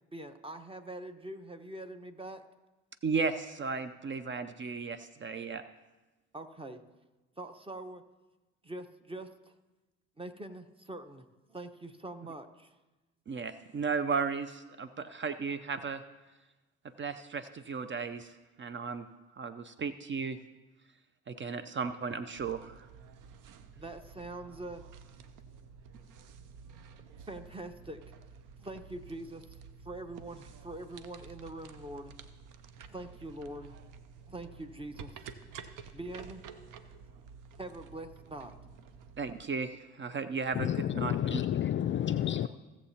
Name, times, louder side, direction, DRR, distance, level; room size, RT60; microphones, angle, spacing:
voice 1, 0.1-2.4 6.3-6.8 7.4-8.0 8.6-9.5 10.2-12.7 23.8-24.8 27.3-28.0 28.6-29.4 29.8-32.1 32.9-33.8 34.3-35.2 35.9-36.4 37.6-38.5 41.7-41.8, right 1 dB, 15° right, 8 dB, 1.1 m, -43 dB
voice 2, 3.0-5.6 13.3-16.0 17.0-19.1 19.4-20.4 21.3-22.7 39.2-40.7 40.9-41.4, right 5 dB, 35° right, 11 dB, 0.6 m, -35 dB
sound 1, 22.3-39.4, right 6 dB, 65° right, 0.8 m, -51 dB
voice 3, 40.5-42.5, left 10 dB, 35° left, 10 dB, 0.4 m, -30 dB
17.0 x 7.3 x 2.9 m, 1.1 s
hypercardioid pair, 50°, 34 cm